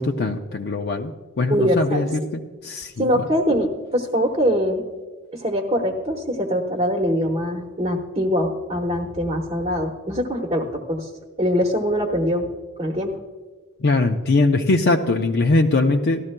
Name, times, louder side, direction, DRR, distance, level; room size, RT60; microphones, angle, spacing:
voice 1, 0.0-3.3 13.8-16.2, left 2 dB, 50° left, 2 dB, 0.5 m, -21 dB
voice 2, 1.5-2.3 3.0-4.8 5.3-11.1 11.4-12.5 12.8-13.2, equal, 30° right, 2 dB, 1.0 m, -23 dB
17.0 x 13.5 x 2.2 m, 1.4 s
head